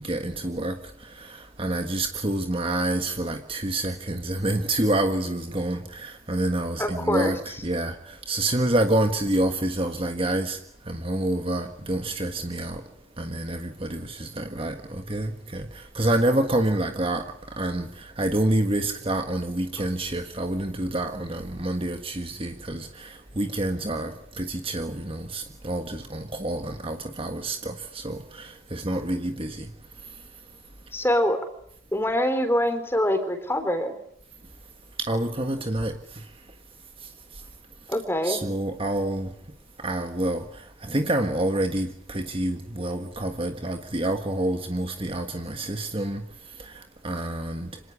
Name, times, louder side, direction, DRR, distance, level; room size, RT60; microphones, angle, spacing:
voice 1, 0.0-12.8 13.2-30.3 35.0-36.5 37.0-37.5 38.2-39.3 39.8-47.8, right 1 dB, 25° right, 1.6 m, -28 dB
voice 2, 6.8-7.3 19.8-19.9 30.9-31.4 31.9-34.0 37.9-38.4, left 1 dB, 10° left, 3.8 m, -24 dB
26.5 x 19.0 x 9.7 m
head